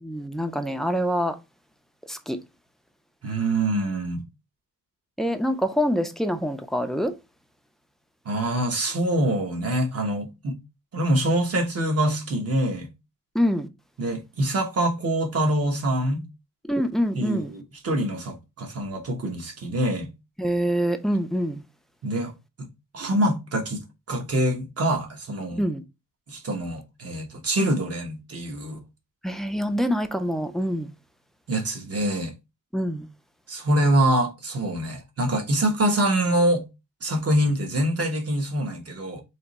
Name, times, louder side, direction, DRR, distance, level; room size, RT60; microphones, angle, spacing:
voice 1, 0.0-1.3 2.1-2.4 5.2-7.1 13.4-13.7 16.7-17.5 20.4-21.6 25.6-25.8 29.2-30.9 32.7-33.1, equal, ahead, 0.3 m, -25 dB
voice 2, 3.2-4.2 8.2-10.6 10.9-12.9 14.0-16.2 17.1-20.1 22.0-22.3 22.6-22.7 22.9-25.6 26.3-28.8 31.5-32.3 33.5-36.6 37.0-39.2, right 1 dB, 45° right, 1.0 m, -25 dB
3.4 x 2.9 x 4.0 m
wide cardioid pair, 175°, 32 cm